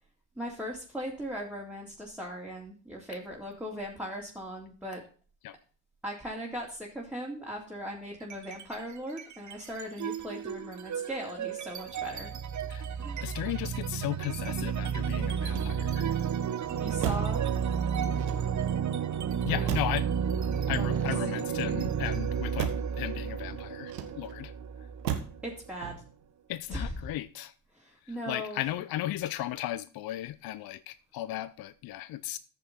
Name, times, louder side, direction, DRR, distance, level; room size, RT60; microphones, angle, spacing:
voice 1, 0.4-5.0 6.0-12.3 12.9-13.3 16.8-17.4 19.5-19.8 20.7-21.0 25.4-26.0 26.7-26.8 27.7-28.6, equal, 5° right, 3.5 m, -39 dB
sound 1, 8.2-8.7 9.1-25.7, right 7 dB, 35° right, 1.2 m, -32 dB
voice 2, 13.2-16.2 19.4-20.1 20.7-24.5 26.5-27.5 28.0-32.4, left 14 dB, 45° left, 0.7 m, -36 dB
Motor vehicle (road), 15.4-16.1 17.0-17.4 18.1-18.8 19.7-20.1 20.9-21.7 22.6-22.9 23.9-24.4 25.0-25.4 25.8-26.2, right 9 dB, 85° right, 1.5 m, -36 dB
14.5 x 6.9 x 4.2 m
hypercardioid pair, 55°, 49 cm